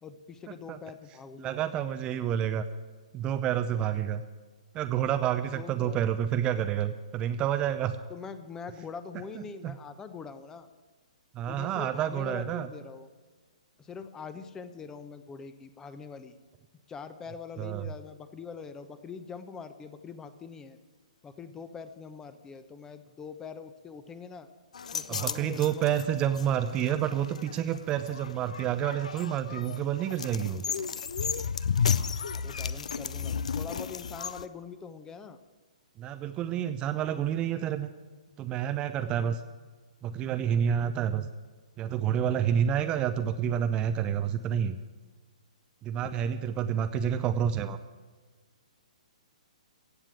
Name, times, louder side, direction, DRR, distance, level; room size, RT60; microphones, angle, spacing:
voice 1, 0.0-1.6 5.5-6.0 8.1-10.7 11.5-13.1 13.8-16.3 16.9-20.8 21.2-24.5 24.9-25.9 32.3-35.4 46.0-46.1, left 5 dB, 15° left, 11 dB, 0.9 m, -43 dB
voice 2, 1.4-2.6 3.1-4.2 4.7-8.0 9.3-9.7 11.3-12.7 17.6-17.9 25.1-30.6 36.0-37.9 38.4-39.4 40.0-41.3 41.8-44.8 45.8-47.8, right 9 dB, 20° right, 9 dB, 0.6 m, -29 dB
sound 1, 24.7-34.5, left 6 dB, 65° left, 0.6 m, -33 dB
16.0 x 7.4 x 8.3 m, 1.4 s
figure-of-eight pair, 120°, 4 cm